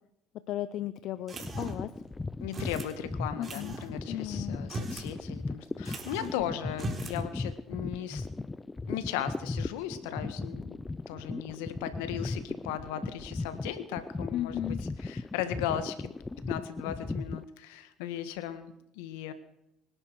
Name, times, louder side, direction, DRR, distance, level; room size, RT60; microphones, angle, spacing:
voice 1, 0.5-1.9 3.4-3.7 4.1-4.6 6.2-6.3 14.3-14.8, left 13 dB, 65° left, 13 dB, 0.7 m, -35 dB
sound 1, 1.3-17.4, left 3 dB, 20° left, 0.5 m, -37 dB
sound 2, 1.3-1.9 2.5-2.9 3.4-3.9 4.6-5.1 5.4-5.5 5.8-6.4 6.7-7.2, right 3 dB, 35° right, 4.0 m, -39 dB
voice 2, 2.4-8.3 8.9-10.8 11.1-16.1 16.5-19.3, left 11 dB, 85° left, 11 dB, 1.7 m, -37 dB
25.0 x 11.0 x 4.8 m, 0.83 s
supercardioid pair, 75°, 0 cm